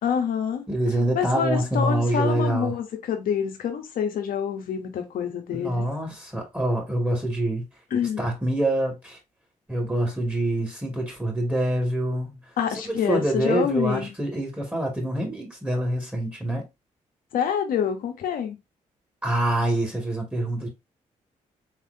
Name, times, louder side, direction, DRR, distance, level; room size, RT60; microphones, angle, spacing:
voice 1, 0.0-0.7 1.1-5.9 7.9-8.2 12.6-14.1 17.3-18.6, left 8 dB, 80° left, 1.1 m, -26 dB
voice 2, 0.7-2.7 5.5-7.7 8.2-9.2 9.7-12.4 12.8-16.7 19.2-20.7, right 1 dB, 10° right, 2.3 m, -25 dB
4.4 x 3.3 x 2.8 m
supercardioid pair, 55°, 14 cm